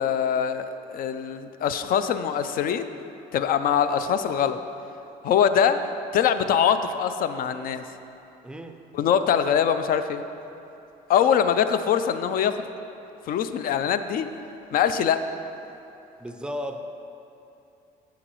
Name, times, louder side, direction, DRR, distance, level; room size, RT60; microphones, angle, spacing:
voice 1, 0.0-2.9 3.3-4.6 5.2-5.8 6.1-7.8 8.9-10.2 11.1-12.7 13.3-14.3 14.7-15.2, left 8 dB, 60° left, 10 dB, 0.4 m, -23 dB
voice 2, 8.4-8.8 16.2-16.8, equal, 5° right, 6 dB, 0.4 m, -34 dB
8.6 x 6.9 x 3.0 m, 2.9 s
cardioid pair, 110°, 17 cm